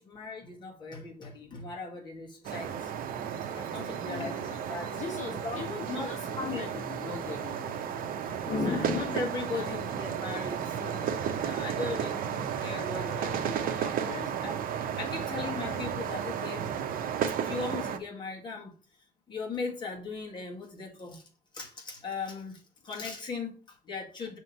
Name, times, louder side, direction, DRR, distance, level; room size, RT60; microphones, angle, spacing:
voice 1, 0.0-2.9 3.5-5.0 5.4-5.6 5.9-6.1 6.4-6.7 8.4-14.0 14.4-14.5 15.0-16.7 17.4-18.7 19.3-21.2 21.5-24.4, left 4 dB, 30° left, 1.8 m, -37 dB
sound 1, 2.4-18.0, right 8 dB, 80° right, 0.8 m, -33 dB
voice 2, 3.9-4.3 4.9-8.0 8.6-8.9 9.5-9.8 14.0-14.4 14.9-15.1, left 5 dB, 55° left, 1.0 m, -42 dB
6.3 x 3.1 x 5.3 m
cardioid pair, 175°, 15 cm